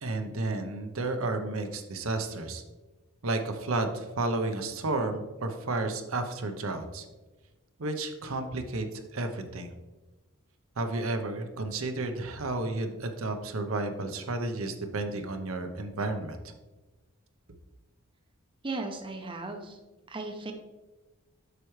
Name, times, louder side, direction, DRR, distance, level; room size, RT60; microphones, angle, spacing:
voice 1, 0.0-2.6 3.2-7.0 7.8-9.7 10.8-16.4, right 2 dB, 70° right, 6 dB, 0.8 m, -32 dB
voice 2, 18.6-19.8 20.1-20.5, right 3 dB, 25° right, 4 dB, 0.7 m, -36 dB
8.0 x 5.9 x 3.2 m, 1.1 s
head